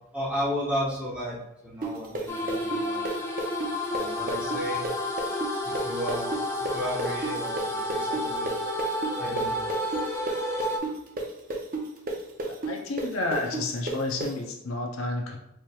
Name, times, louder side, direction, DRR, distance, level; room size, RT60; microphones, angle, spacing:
voice 1, 0.1-1.4 1.6-3.1 3.9-4.8 5.6-6.3 6.6-8.7 9.2-9.6, equal, 5° right, -7 dB, 1.1 m, -33 dB
sound 1, 1.8-9.4 9.7-14.3, right 3 dB, 40° right, 0.5 m, -31 dB
sound 2, 2.3-10.8, left 1 dB, 10° left, 0.4 m, -31 dB
voice 2, 12.4-15.4, left 2 dB, 70° left, 1 dB, 0.5 m, -31 dB
4.3 x 3.0 x 2.3 m, 0.81 s
head